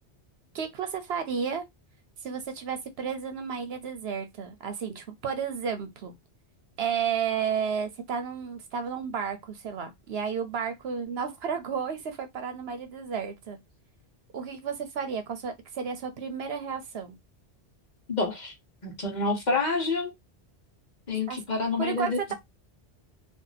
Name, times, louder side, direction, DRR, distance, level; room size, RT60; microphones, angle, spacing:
voice 1, 0.5-1.6 2.2-6.2 6.8-13.6 14.3-17.2 21.3-21.4 21.8-22.3, right 7 dB, 70° right, 0.9 m, -32 dB
voice 2, 18.1-18.5 18.8-20.1 21.1-22.3, left 3 dB, 40° left, 1.1 m, -28 dB
2.7 x 2.5 x 3.9 m
omnidirectional pair, 1.2 m